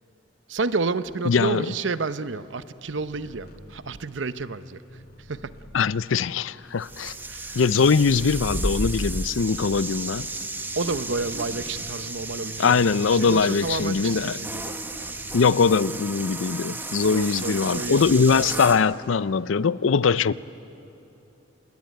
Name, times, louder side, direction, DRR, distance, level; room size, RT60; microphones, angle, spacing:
voice 1, 0.5-5.0 5.3-5.5 7.3-7.6 10.8-14.7 17.1-18.7, right 3 dB, 70° right, 13 dB, 0.8 m, -30 dB
voice 2, 1.3-1.7 5.7-7.1 7.6-10.3 12.6-14.4 15.3-20.3, left 5 dB, 85° left, 18 dB, 0.5 m, -21 dB
sound 1, 3.0-8.6 8.8-14.3 14.6-16.5, equal, 50° left, 2.0 m, -50 dB
sound 2, 6.8-18.8, right 2 dB, 10° right, 1.2 m, -33 dB
26.5 x 21.0 x 9.3 m, 2.9 s
head